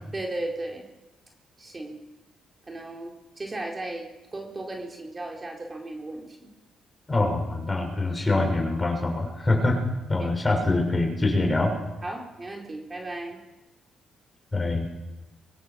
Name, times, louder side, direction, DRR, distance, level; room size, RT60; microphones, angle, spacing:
voice 1, 0.1-0.9 1.6-2.0 2.7-6.5 10.2-10.3 12.0-13.4, right 2 dB, 25° right, 1 dB, 4.3 m, -35 dB
voice 2, 7.1-9.8 10.1-11.8 14.5-14.9, left 2 dB, 20° left, 3 dB, 6.7 m, -24 dB
24.0 x 23.5 x 7.1 m, 1.1 s
cardioid pair, 80°, 0 cm